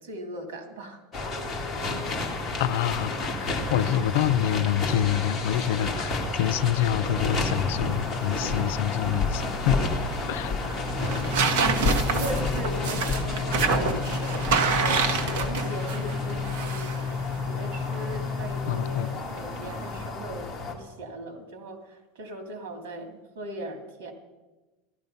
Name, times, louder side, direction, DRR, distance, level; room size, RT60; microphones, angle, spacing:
voice 1, 0.0-1.5 3.6-4.0 10.6-11.4 12.1-17.0 17.5-24.1, right 1 dB, 85° right, 5 dB, 2.9 m, -39 dB
sound 1, 1.1-20.7, left 3 dB, 10° left, 2.0 m, -31 dB
voice 2, 2.6-9.9 10.3-10.6 18.7-19.1, left 10 dB, 65° left, 14 dB, 0.5 m, -26 dB
sound 2, 7.9-20.1, right 5 dB, 65° right, 1.5 m, -30 dB
sound 3, 10.9-19.1, left 6 dB, 20° right, 3.7 m, -33 dB
14.5 x 12.5 x 5.5 m, 1.2 s
supercardioid pair, 180°, 0 cm